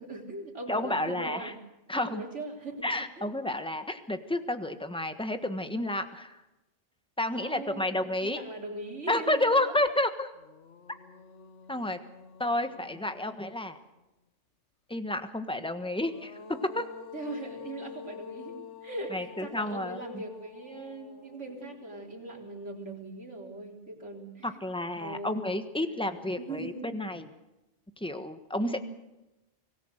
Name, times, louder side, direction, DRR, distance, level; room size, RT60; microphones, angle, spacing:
voice 1, 0.0-1.6 1.9-3.3 7.3-9.7 17.1-18.6 18.8-24.6 25.0-25.5 25.9-26.1 26.4-26.9 28.6-28.8, right 2 dB, 80° right, 0 dB, 4.1 m, -40 dB
voice 2, 0.7-1.5 1.9-2.2 2.8-6.4 7.2-8.4 9.1-10.3 11.7-12.0 12.4-13.8 14.9-16.4 16.7-16.8 19.1-20.2 24.4-27.3 28.0-28.8, left 1 dB, 5° left, 8 dB, 1.3 m, -30 dB
sound 1, 9.9-10.0 10.4-14.0 15.7-22.9, left 7 dB, 75° left, 1.6 m, -48 dB
25.0 x 18.5 x 6.6 m, 1.0 s
omnidirectional pair, 1.2 m